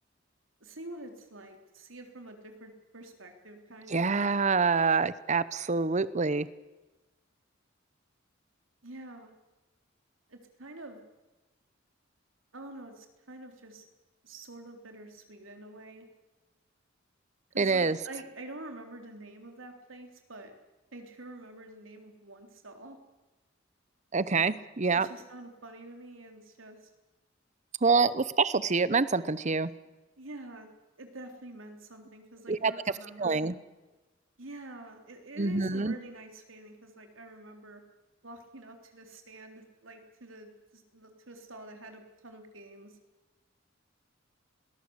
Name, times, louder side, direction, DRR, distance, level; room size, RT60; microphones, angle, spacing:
voice 1, 0.6-4.1 8.8-9.3 10.3-11.0 12.5-13.8 14.2-16.1 17.5-20.6 20.9-23.0 24.9-26.9 30.2-30.7 31.0-33.4 34.4-37.8 38.2-43.0, right 1 dB, 85° right, 5 dB, 3.6 m, -47 dB
voice 2, 3.9-6.5 17.6-18.0 24.1-25.1 27.8-29.7 32.5-32.7 33.2-33.5 35.4-35.9, right 4 dB, 35° right, 17 dB, 0.8 m, -26 dB
21.5 x 19.0 x 8.1 m, 1.1 s
head